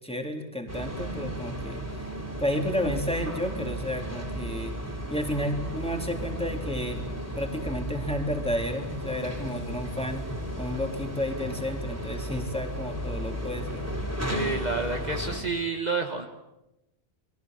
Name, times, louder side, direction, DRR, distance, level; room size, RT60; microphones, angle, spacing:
voice 1, 0.0-1.8 2.4-4.8 5.1-7.0 7.4-10.3 10.6-13.9, equal, 5° left, 2 dB, 3.7 m, -31 dB
sound 1, 0.7-15.4, equal, 15° right, 3.7 m, -34 dB
voice 2, 14.3-16.3, right 4 dB, 40° right, 4 dB, 1.7 m, -29 dB
29.5 x 22.5 x 8.0 m, 0.96 s
omnidirectional pair, 1.1 m